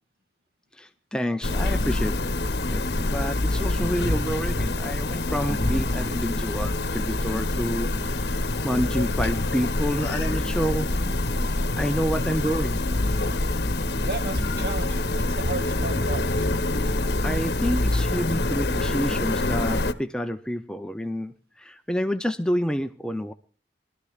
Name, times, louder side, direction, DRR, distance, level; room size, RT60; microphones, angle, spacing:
voice 1, 0.8-11.0 11.8-12.8 17.2-23.3, equal, 5° left, 7 dB, 0.5 m, -29 dB
sound 1, 1.4-19.9, left 2 dB, 65° left, 1.0 m, -26 dB
voice 2, 14.0-16.5, right 2 dB, 55° right, 6 dB, 2.1 m, -34 dB
23.5 x 13.0 x 2.4 m, 0.38 s
head